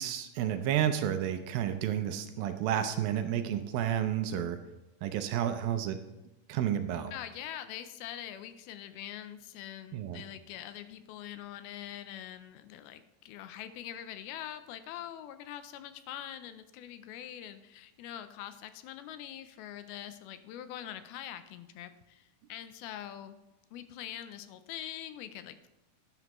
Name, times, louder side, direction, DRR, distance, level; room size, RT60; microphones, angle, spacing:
voice 1, 0.0-4.6 5.0-6.0 6.5-7.1 9.9-10.2, right 10 dB, 80° right, 8 dB, 2.3 m, -31 dB
voice 2, 7.1-23.4 23.7-25.7, left 11 dB, 80° left, 11 dB, 2.5 m, -44 dB
11.0 x 10.0 x 3.0 m, 0.95 s
omnidirectional pair, 4.5 m